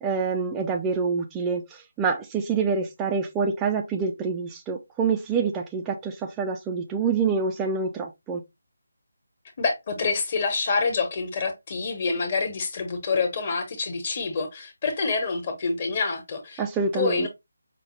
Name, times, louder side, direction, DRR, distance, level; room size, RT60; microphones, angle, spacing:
voice 1, 0.0-8.4 16.6-17.3, right 5 dB, 10° right, 0.4 m, -26 dB
voice 2, 9.6-16.6 16.9-17.3, left 4 dB, 35° left, 1.2 m, -27 dB
5.6 x 2.2 x 3.1 m
figure-of-eight pair, 160°, 0 cm